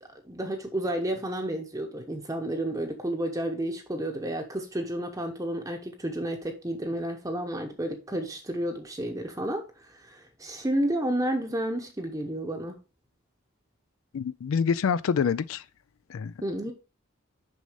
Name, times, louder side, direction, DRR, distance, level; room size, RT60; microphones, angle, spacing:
voice 1, 0.0-12.8 16.4-16.7, right 1 dB, 15° right, 0.8 m, -31 dB
voice 2, 14.1-15.6 16.1-16.3, left 6 dB, 70° left, 0.4 m, -26 dB
6.5 x 5.4 x 4.9 m
head